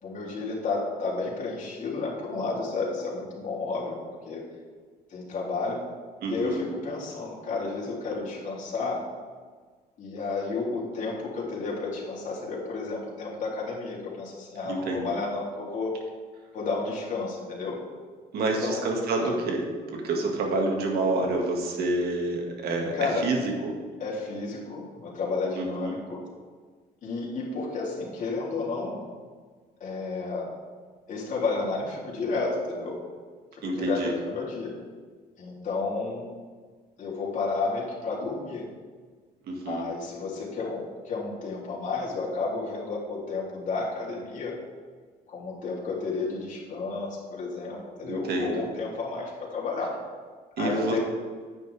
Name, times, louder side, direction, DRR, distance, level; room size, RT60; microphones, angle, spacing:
voice 1, 0.0-4.4 5.1-5.8 6.3-9.1 10.0-16.0 16.5-17.8 18.3-18.8 19.2-19.4 22.9-23.3 24.0-26.2 27.0-29.0 29.8-30.5 31.1-33.0 33.7-34.8 35.4-36.3 37.0-38.7 39.6-44.6 45.3-50.0 50.6-51.0, left 3 dB, 50° left, -5 dB, 3.2 m, -31 dB
voice 2, 6.2-6.6 14.6-15.1 18.3-23.7 25.6-25.9 33.6-34.1 39.5-39.8 48.0-48.6 50.6-51.0, right 2 dB, 70° right, 1 dB, 2.1 m, -28 dB
10.5 x 8.9 x 3.5 m, 1.5 s
cardioid pair, 110°, 17 cm